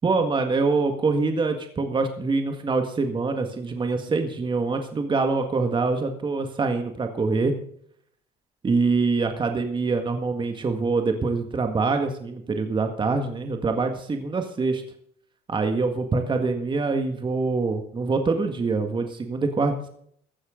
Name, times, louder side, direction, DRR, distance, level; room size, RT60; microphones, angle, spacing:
voice 1, 0.0-7.6 8.6-14.8 15.5-19.9, right 4 dB, 30° right, 5 dB, 1.8 m, -25 dB
16.0 x 13.0 x 3.8 m, 0.66 s
cardioid pair, 110°, 17 cm